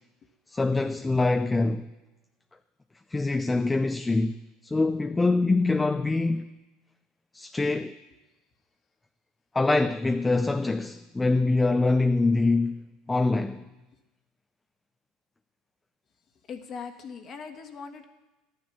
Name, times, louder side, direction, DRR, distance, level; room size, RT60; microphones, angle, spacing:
voice 1, 0.5-1.9 3.1-6.5 7.3-8.0 9.5-13.6, left 3 dB, 15° left, 0.5 m, -24 dB
voice 2, 16.5-18.1, left 5 dB, 45° left, 1.4 m, -40 dB
11.0 x 9.6 x 7.1 m
supercardioid pair, 90°, 0 cm